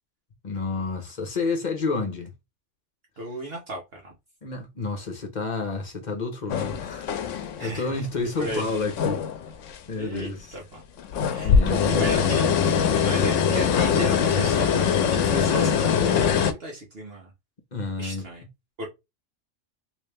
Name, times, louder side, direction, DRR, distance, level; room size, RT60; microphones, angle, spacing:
voice 1, 0.4-2.3 4.4-9.3 9.9-10.6 11.1-12.1 17.7-18.2, left 4 dB, 40° left, 0.9 m, -30 dB
voice 2, 3.2-4.1 7.6-8.1 8.4-8.6 10.0-10.8 11.3-17.3 18.0-18.4 18.8-18.9, right 1 dB, 55° right, 1.2 m, -35 dB
sound 1, 6.5-7.7 8.1-9.8 10.1-10.2 11.0-16.5, left 7 dB, 90° left, 1.0 m, -23 dB
3.1 x 3.1 x 3.3 m
omnidirectional pair, 1.2 m